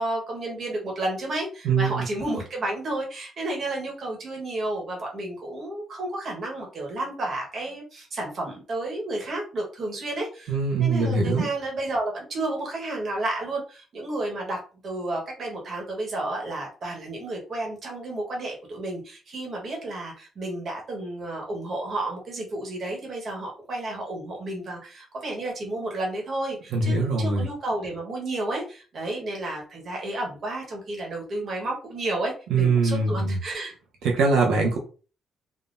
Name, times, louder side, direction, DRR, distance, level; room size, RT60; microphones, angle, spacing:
voice 1, 0.0-33.7, right 2 dB, 40° right, -1 dB, 1.1 m, -31 dB
voice 2, 1.6-2.1 10.5-11.5 26.7-27.4 32.5-33.4 34.0-34.8, right 3 dB, 90° right, 0 dB, 0.7 m, -22 dB
3.6 x 2.2 x 2.5 m, 0.36 s
cardioid pair, 160°, 0 cm